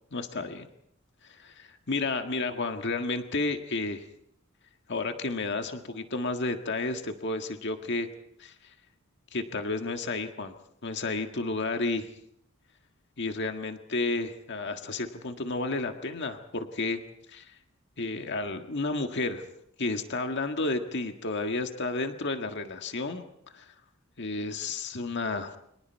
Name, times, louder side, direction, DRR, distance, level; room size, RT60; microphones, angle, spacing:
voice 1, 0.1-0.7 1.2-4.1 4.9-8.1 8.4-8.7 9.3-10.5 10.8-12.1 13.2-17.0 17.3-17.5 18.0-19.5 19.8-23.3 23.5-23.7 24.2-25.5, left 3 dB, 60° left, 6 dB, 1.7 m, -31 dB
29.0 x 24.5 x 4.7 m, 0.73 s
head